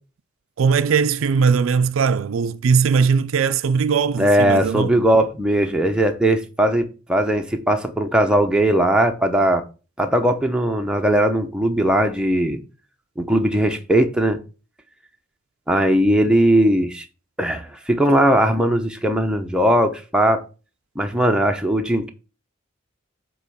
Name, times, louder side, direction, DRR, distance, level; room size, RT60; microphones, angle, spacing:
voice 1, 0.6-4.9, right 5 dB, 80° right, 0.4 m, -19 dB
voice 2, 4.2-9.6 10.0-12.6 13.2-14.4 15.7-17.0 17.4-20.4 21.0-22.1, right 1 dB, 5° right, 0.8 m, -19 dB
8.1 x 3.1 x 5.7 m
head